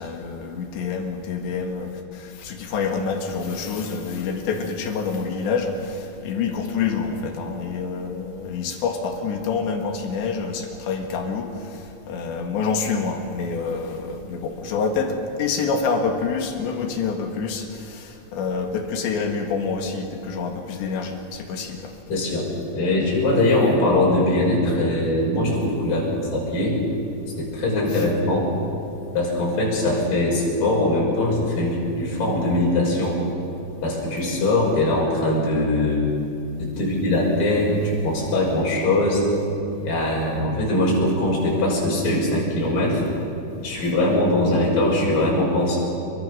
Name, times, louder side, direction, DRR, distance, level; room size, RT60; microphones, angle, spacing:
voice 1, 0.0-11.5 12.1-21.9 43.8-44.0, left 5 dB, 65° left, 4 dB, 3.9 m, -27 dB
voice 2, 22.1-22.4 22.7-26.8 27.4-28.5 29.1-33.2 33.8-36.1 36.6-39.2 39.8-43.0 43.6-45.8, left 1 dB, 45° left, -4 dB, 7.4 m, -21 dB
27.0 x 23.5 x 6.5 m, 2.7 s
omnidirectional pair, 5.7 m